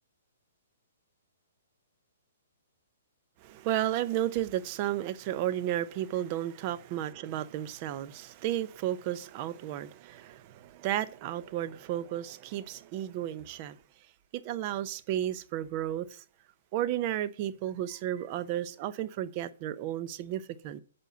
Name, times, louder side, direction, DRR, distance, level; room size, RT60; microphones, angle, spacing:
voice 1, 3.4-13.8 14.3-16.2 16.7-20.8, right 12 dB, 35° right, 0.6 m, -33 dB
9.2 x 5.3 x 6.8 m
hypercardioid pair, 155°, 0 cm